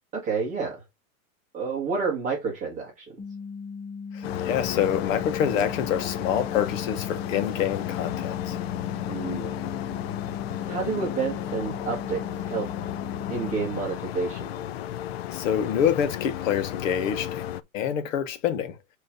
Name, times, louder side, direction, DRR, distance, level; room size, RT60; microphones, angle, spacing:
voice 1, 0.1-0.8 1.5-3.1 9.1-9.6 10.7-12.7 13.3-14.5, right 5 dB, 15° right, 1.6 m, -29 dB
sound 1, 3.2-13.7, left 5 dB, 20° left, 0.9 m, -38 dB
voice 2, 4.1-8.6 15.3-17.4 17.7-18.8, left 8 dB, 65° left, 1.4 m, -26 dB
sound 2, 4.2-17.6, left 12 dB, 50° left, 0.4 m, -33 dB
8.1 x 3.2 x 3.8 m
supercardioid pair, 170°, 42 cm